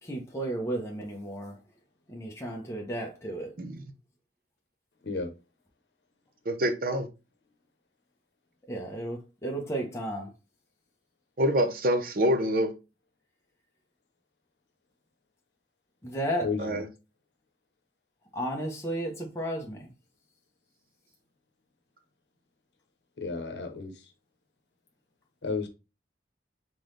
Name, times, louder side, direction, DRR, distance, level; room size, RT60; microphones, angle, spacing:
voice 1, 0.0-1.6 2.1-3.5 8.7-10.3 16.0-16.5 18.3-19.9, right 1 dB, 15° left, 0.8 m, -33 dB
voice 2, 6.5-7.1 11.4-12.7 16.6-16.8, equal, 50° right, 0.7 m, -26 dB
voice 3, 23.2-23.9 25.4-25.7, left 4 dB, 80° left, 0.9 m, -32 dB
3.9 x 3.8 x 3.2 m
head